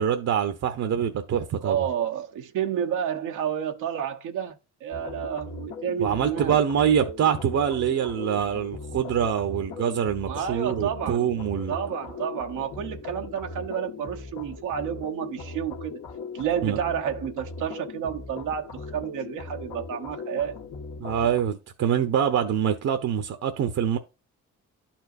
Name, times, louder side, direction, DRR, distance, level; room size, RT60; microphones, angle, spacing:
voice 1, 0.0-1.9 6.0-11.8 16.6-16.8 21.0-24.0, right 8 dB, 60° right, 0.9 m, -25 dB
voice 2, 1.6-4.6 4.8-6.6 10.3-11.3 11.7-16.0 16.3-20.6, right 9 dB, 85° right, 1.0 m, -30 dB
sound 1, 4.9-21.4, left 4 dB, 80° left, 1.6 m, -39 dB
11.5 x 4.5 x 2.6 m
cardioid pair, 90°, 30 cm